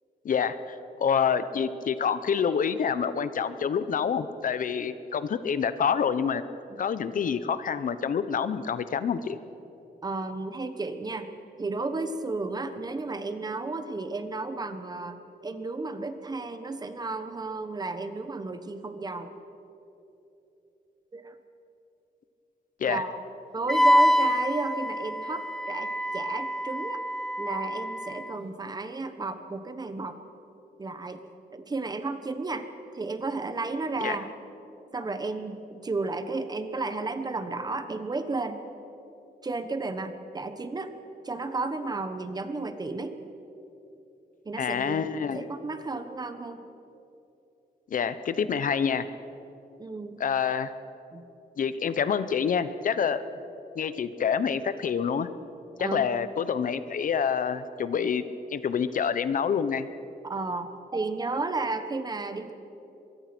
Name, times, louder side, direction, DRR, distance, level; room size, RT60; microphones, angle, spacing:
voice 1, 0.2-6.4 6.8-9.4 22.8-23.0 34.0-34.2 44.6-45.4 47.9-49.1 50.2-50.7 51.6-53.2 53.8-55.3 55.8-58.2 58.5-59.9, left 7 dB, 55° left, 13 dB, 0.8 m, -27 dB
voice 2, 10.0-11.3 11.6-19.3 21.1-21.4 22.9-23.1 23.5-27.0 27.4-30.2 30.8-31.2 31.5-32.7 32.9-34.3 34.9-38.6 39.4-40.9 41.2-43.2 44.4-45.1 45.3-46.6 49.8-50.2 51.1-51.3 55.8-56.1 60.2-62.5, right 3 dB, 25° right, 9 dB, 1.2 m, -33 dB
Wind instrument woodwind instrument, 23.7-28.3, equal, ahead, 0.5 m, -26 dB
24.0 x 22.5 x 6.1 m, 3.0 s
wide cardioid pair, 180°, 17 cm